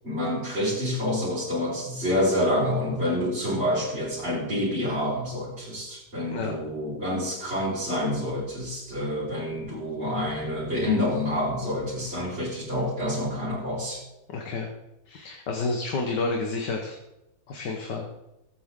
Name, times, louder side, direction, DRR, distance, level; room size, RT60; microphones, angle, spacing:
voice 1, 0.0-14.0, left 1 dB, 40° right, -11 dB, 5.3 m, -27 dB
voice 2, 14.3-14.7 15.1-17.0 17.5-18.1, left 3 dB, 90° left, 2 dB, 2.0 m, -30 dB
20.0 x 8.8 x 3.8 m, 0.93 s
omnidirectional pair, 1.8 m